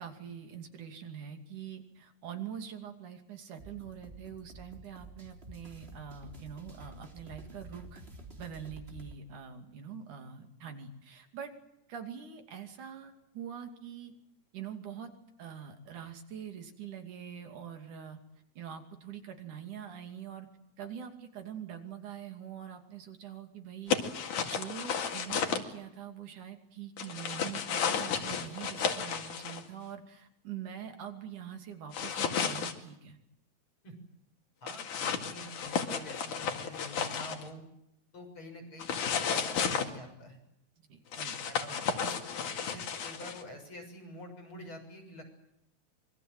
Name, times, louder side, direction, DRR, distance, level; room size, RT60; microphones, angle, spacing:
voice 1, 0.0-8.0 8.4-11.5 11.9-14.1 14.5-15.1 15.4-18.2 18.6-20.5 20.8-24.0 24.4-33.2 40.9-41.4 41.7-41.8, right 8 dB, 80° right, 6 dB, 4.1 m, -44 dB
sound 1, 3.6-9.2, right 2 dB, 20° right, 3.5 m, -50 dB
sound 2, 23.9-25.6 27.0-29.6 31.9-32.7 34.7-37.5 38.8-39.9 41.1-43.4, left 7 dB, 80° left, 3.7 m, -33 dB
voice 2, 34.6-37.6 38.1-40.4 41.4-45.4, left 1 dB, 40° left, 4 dB, 7.4 m, -47 dB
26.0 x 23.5 x 7.7 m, 0.81 s
omnidirectional pair, 3.5 m